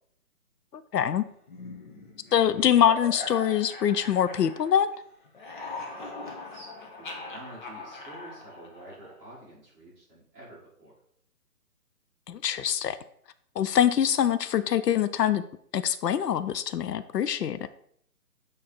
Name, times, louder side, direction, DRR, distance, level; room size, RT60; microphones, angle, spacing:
voice 1, 0.7-1.2 2.3-4.9 12.3-13.0 13.6-15.4 15.7-17.7, left 9 dB, 90° left, 13 dB, 0.6 m, -24 dB
sound 1, 1.5-5.0 5.2-9.3, left 3 dB, 30° left, 1.0 m, -41 dB
voice 2, 6.2-10.9, right 1 dB, 15° right, -9 dB, 2.0 m, -49 dB
8.5 x 3.2 x 4.3 m, 0.67 s
hypercardioid pair, 160°, 47 cm